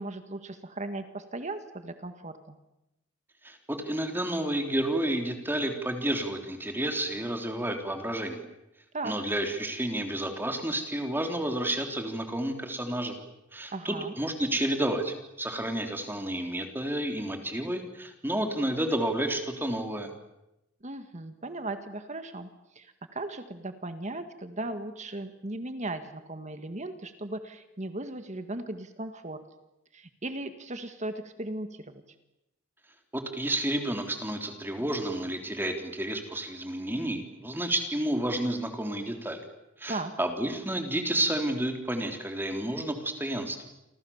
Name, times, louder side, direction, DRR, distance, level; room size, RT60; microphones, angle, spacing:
voice 1, 0.0-2.6 8.9-9.1 13.7-14.1 20.8-22.5 22.8-29.4 29.9-32.0 39.9-40.1, right 2 dB, 35° right, 9 dB, 1.8 m, -37 dB
voice 2, 3.4-8.4 9.0-13.2 13.5-20.1 33.1-39.4 39.8-43.6, right 1 dB, 10° right, 4 dB, 3.6 m, -30 dB
29.5 x 25.0 x 7.3 m, 0.92 s
head